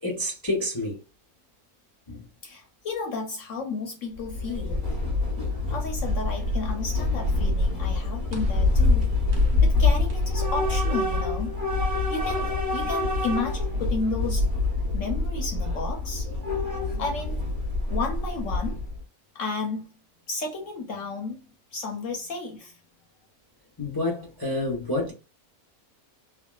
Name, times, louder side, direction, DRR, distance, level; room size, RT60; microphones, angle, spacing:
voice 1, 0.0-1.0 2.1-2.2 23.8-25.1, left 1 dB, 35° left, 0.3 m, -28 dB
voice 2, 2.4-4.8 5.7-9.1 9.6-11.6 12.1-14.5 14.9-16.3 17.0-17.5 17.9-18.8 19.3-19.9 20.3-21.4 21.7-22.8, left 3 dB, 65° left, 0.9 m, -32 dB
Train / Subway metro underground, 4.2-19.0, left 3 dB, 45° right, 1.4 m, -25 dB
sound 1, 8.3-12.7, right 1 dB, 70° right, 1.5 m, -47 dB
3.4 x 2.2 x 2.2 m
omnidirectional pair, 1.6 m